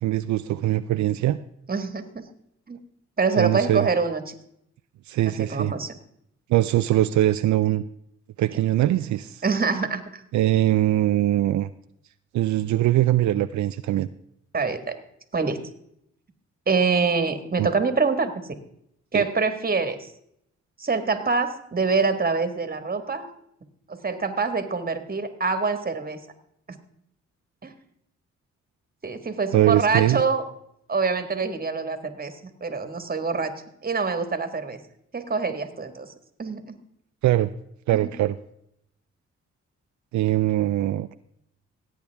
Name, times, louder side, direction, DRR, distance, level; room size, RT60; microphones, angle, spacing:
voice 1, 0.0-1.4 3.4-3.9 5.1-5.7 6.5-7.8 8.4-9.4 10.3-11.7 12.3-14.1 17.6-17.7 19.1-19.3 29.5-30.2 37.2-37.5 37.9-38.4 40.1-41.1, right 14 dB, 75° right, 11 dB, 0.5 m, -22 dB
voice 2, 1.7-2.2 2.7-2.8 3.2-4.3 5.3-6.0 9.4-10.2 14.5-15.0 15.3-15.6 16.7-18.6 19.1-20.1 20.8-23.3 23.9-26.2 26.7-26.8 27.6-27.7 29.0-30.5 30.9-33.5 33.8-34.8 35.1-36.1 36.4-36.7 37.9-38.1, right 4 dB, 30° right, 9 dB, 1.7 m, -25 dB
17.0 x 8.6 x 3.5 m, 0.74 s
cardioid pair, 70°, 29 cm